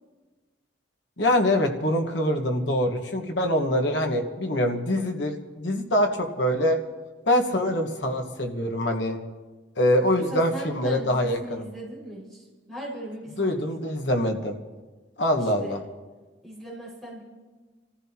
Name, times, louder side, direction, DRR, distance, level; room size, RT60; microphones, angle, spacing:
voice 1, 1.2-6.8 7.2-9.2 9.8-11.6 13.4-14.5 15.2-15.8, left 1 dB, 65° left, 3 dB, 1.5 m, -24 dB
voice 2, 10.2-13.6 15.4-15.8 16.4-17.2, right 1 dB, ahead, -7 dB, 5.7 m, -38 dB
26.5 x 14.5 x 3.0 m, 1.3 s
head